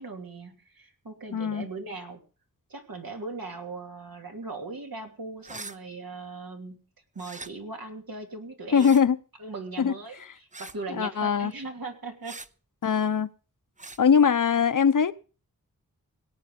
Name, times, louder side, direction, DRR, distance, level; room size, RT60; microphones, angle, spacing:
voice 1, 0.0-2.2 2.7-6.8 7.1-9.0 9.4-12.4, right 3 dB, 75° right, 2.9 m, -39 dB
voice 2, 1.3-1.7 8.7-9.2 9.8-9.9 11.0-11.5 12.8-13.3 14.0-15.1, left 7 dB, 60° left, 0.8 m, -21 dB
sound 1, 5.4-5.8 7.2-7.5 8.7-9.0 10.5-10.8 12.2-12.5 13.8-14.0, right 3 dB, 20° right, 0.6 m, -41 dB
18.0 x 9.2 x 5.3 m
wide cardioid pair, 65°, 35 cm